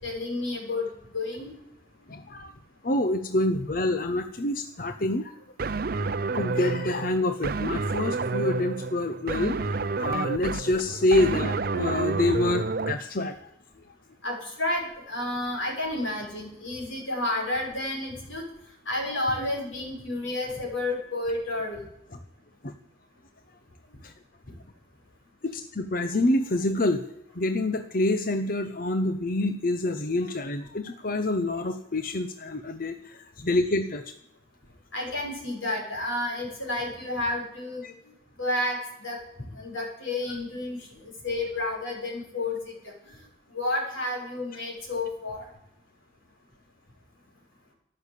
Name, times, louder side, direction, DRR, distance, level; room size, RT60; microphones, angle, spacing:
voice 1, 0.0-1.5 14.2-18.5 18.9-21.8 24.5-24.6 34.9-37.8 38.4-39.2 39.5-40.8 41.0-42.9 43.5-45.5, left 2 dB, 90° left, 0 dB, 6.4 m, -31 dB
voice 2, 2.1-2.5 2.8-5.4 6.3-13.5 22.6-22.7 24.0-24.1 25.4-27.0 27.3-34.1 37.8-37.9 40.3-40.4, left 2 dB, 45° left, 8 dB, 0.9 m, -27 dB
sound 1, 5.6-12.9, right 3 dB, 50° right, 0.6 m, -29 dB
13.5 x 11.5 x 8.3 m, 0.82 s
head